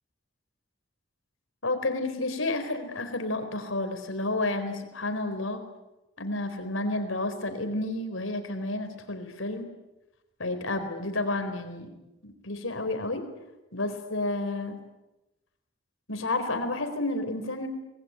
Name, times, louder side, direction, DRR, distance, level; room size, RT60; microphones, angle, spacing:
voice 1, 1.6-5.6 6.2-9.7 10.4-11.9 12.2-13.3 13.7-14.8 16.1-17.7, left 2 dB, 90° left, 8 dB, 4.2 m, -30 dB
25.5 x 20.5 x 9.5 m, 0.99 s
head